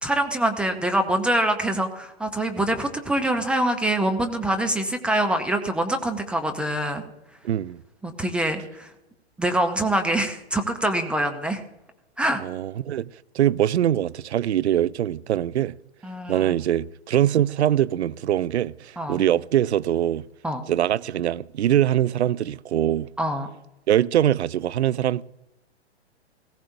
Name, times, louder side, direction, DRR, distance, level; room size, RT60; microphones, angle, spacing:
voice 1, 0.0-7.0 8.0-8.9 9.4-11.6 12.2-12.4 16.0-16.5 19.0-19.2 20.4-20.6 23.2-23.5, right 1 dB, 5° right, 0.5 m, -24 dB
voice 2, 7.4-7.8 12.4-13.1 13.3-15.7 16.3-20.2 20.7-23.1 23.9-25.2, right 11 dB, 75° right, 0.5 m, -23 dB
18.5 x 16.0 x 2.7 m
hypercardioid pair, 130°, 33 cm